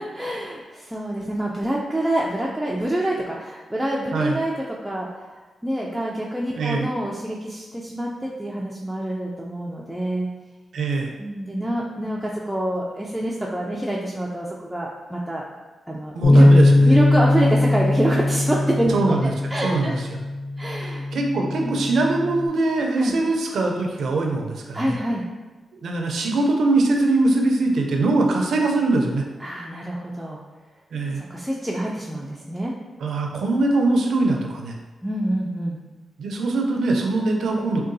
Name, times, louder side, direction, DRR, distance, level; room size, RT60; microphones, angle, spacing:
voice 1, 0.0-5.3 5.6-10.3 11.2-15.5 15.9-16.5 16.9-20.0 20.6-21.1 21.6-21.8 23.0-23.1 24.7-25.3 29.4-30.4 31.2-32.7 35.0-35.8, right 1 dB, 5° right, -4 dB, 0.3 m, -26 dB
voice 2, 6.6-6.9 10.7-11.1 16.1-16.9 18.9-19.3 19.6-20.0 20.8-25.0 25.7-29.3 30.9-31.2 33.0-34.8 36.2-37.8, right 2 dB, 75° right, 1 dB, 0.4 m, -22 dB
Bass guitar, 16.2-22.5, left 2 dB, 70° left, 0.5 m, -20 dB
3.7 x 2.2 x 2.6 m, 1.2 s
cardioid pair, 80°, 0 cm